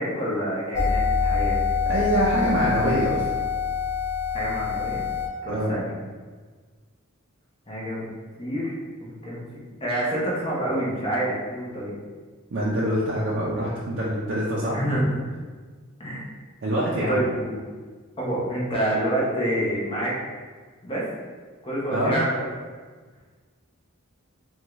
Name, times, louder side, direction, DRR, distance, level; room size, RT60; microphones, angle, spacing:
voice 1, 0.0-1.6 4.3-5.0 5.4-5.9 7.7-8.1 8.4-8.7 9.0-12.0 14.7-15.1 16.0-16.2 17.1-17.6 18.2-20.2 20.8-21.1 21.6-22.5, right 1 dB, 25° left, -6 dB, 0.7 m, -27 dB
sound 1, 0.7-5.3, left 5 dB, 70° left, 0.9 m, -25 dB
voice 2, 1.9-3.3 5.5-5.8 12.5-15.0 16.6-17.2 21.9-22.2, right 1 dB, 55° right, -7 dB, 0.5 m, -25 dB
3.5 x 2.3 x 3.0 m, 1.5 s
head